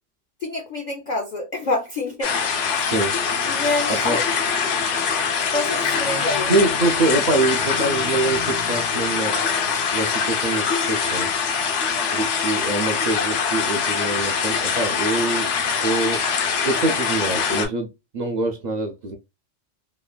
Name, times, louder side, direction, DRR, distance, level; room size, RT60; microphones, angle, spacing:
voice 1, 0.4-2.4 2.7-2.8 3.5-4.2 5.5-6.5, left 2 dB, 55° left, 0.5 m, -27 dB
sound 1, 2.2-17.7, left 6 dB, 75° left, 0.9 m, -23 dB
voice 2, 2.8-3.1 3.9-4.2 6.5-9.4 9.9-11.3 12.1-15.5 15.8-16.2 16.6-17.9 18.1-19.2, right 2 dB, 70° right, 0.4 m, -24 dB
3.1 x 2.1 x 2.2 m
omnidirectional pair, 1.3 m